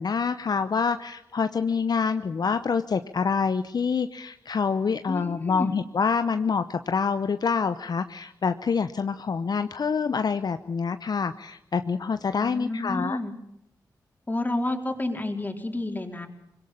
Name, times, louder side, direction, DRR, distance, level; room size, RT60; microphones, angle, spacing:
voice 1, 0.0-13.2, left 5 dB, 60° left, 10 dB, 0.8 m, -26 dB
voice 2, 5.1-5.8 12.4-13.3 14.3-16.3, left 2 dB, 20° left, 3 dB, 4.2 m, -30 dB
21.5 x 17.5 x 8.6 m, 0.84 s
supercardioid pair, 45°, 8 cm